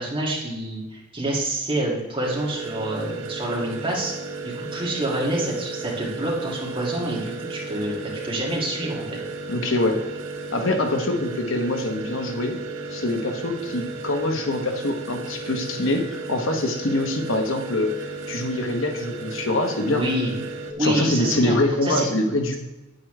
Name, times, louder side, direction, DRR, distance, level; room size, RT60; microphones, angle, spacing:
voice 1, 0.0-4.1 4.4-7.9 8.2-9.0 19.9-20.3 20.8-22.1, right 1 dB, 25° right, -4 dB, 2.6 m, -27 dB
sound 1, 2.2-20.7, right 3 dB, 90° right, 1.1 m, -34 dB
voice 2, 9.5-10.0 10.5-12.6 12.9-17.9 18.3-20.0 20.8-22.5, left 2 dB, 90° left, 4 dB, 1.2 m, -24 dB
9.0 x 8.6 x 3.4 m, 1.0 s
head